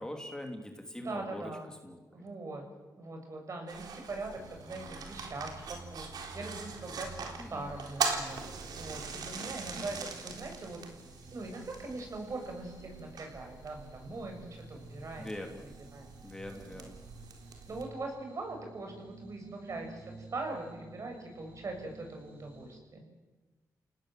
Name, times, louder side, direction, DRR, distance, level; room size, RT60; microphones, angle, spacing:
voice 1, 0.0-1.5 1.8-2.0 7.4-7.7 9.8-10.0 15.2-15.7 16.2-17.0, left 1 dB, 10° left, 3 dB, 3.2 m, -42 dB
voice 2, 1.0-1.7 2.1-2.7 3.0-6.1 6.3-10.8 11.3-16.1 16.7-16.9 17.7-23.1, right 2 dB, 50° right, 3 dB, 7.6 m, -42 dB
sound 1, 3.7-17.8, right 5 dB, 75° right, 4.0 m, -42 dB
sound 2, 4.3-22.8, right 2 dB, 25° right, 7.2 m, -53 dB
30.0 x 18.5 x 7.9 m, 1.2 s
cardioid pair, 80°, 7 cm